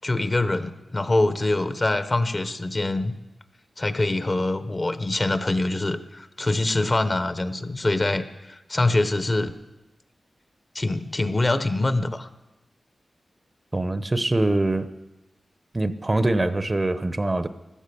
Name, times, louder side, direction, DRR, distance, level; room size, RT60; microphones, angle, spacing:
voice 1, 0.0-3.1 3.8-9.5 10.7-12.3, left 2 dB, 35° left, 11 dB, 1.0 m, -24 dB
voice 2, 13.7-14.9 15.7-17.5, right 2 dB, 30° right, 12 dB, 0.8 m, -23 dB
16.0 x 12.5 x 6.9 m, 1.0 s
wide cardioid pair, 80°, 0 cm